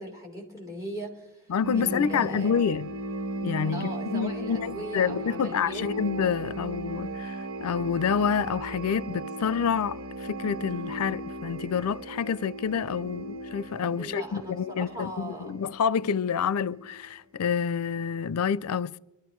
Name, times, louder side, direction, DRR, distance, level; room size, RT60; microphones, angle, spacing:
voice 1, 0.0-1.5 1.8-2.7 3.7-5.8 14.0-15.5, equal, 15° right, 3.9 m, -39 dB
voice 2, 1.5-2.9 3.4-19.0, left 7 dB, 85° left, 0.4 m, -28 dB
sound 1, 1.6-17.1, right 1 dB, 65° right, 0.9 m, -37 dB
24.0 x 12.5 x 3.1 m
head